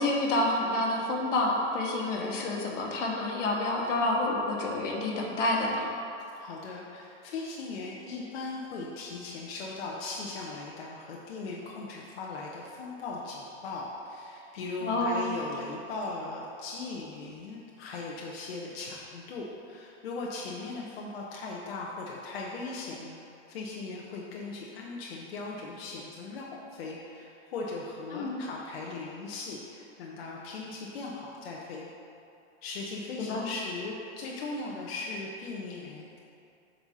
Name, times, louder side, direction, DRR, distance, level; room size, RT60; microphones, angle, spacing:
voice 1, 0.0-5.9 14.8-15.3 28.1-28.4 33.3-33.5, left 2 dB, 80° left, -1 dB, 1.6 m, -28 dB
voice 2, 6.4-23.2 23.5-31.9 32.6-36.2, left 3 dB, 55° left, -3 dB, 1.0 m, -38 dB
7.7 x 4.2 x 5.5 m, 2.7 s
supercardioid pair, 170°, 36 cm